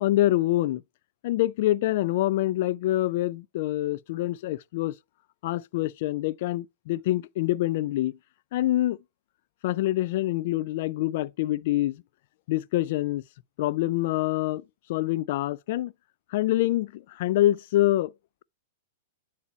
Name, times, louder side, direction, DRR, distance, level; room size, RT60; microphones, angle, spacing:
voice 1, 0.0-0.8 1.2-4.9 5.4-8.2 8.5-9.0 9.6-12.0 12.5-13.2 13.6-14.6 14.9-15.9 16.3-18.1, left 15 dB, 60° left, 0.3 m, -25 dB
9.4 x 4.1 x 4.2 m
hypercardioid pair, 110°, 0 cm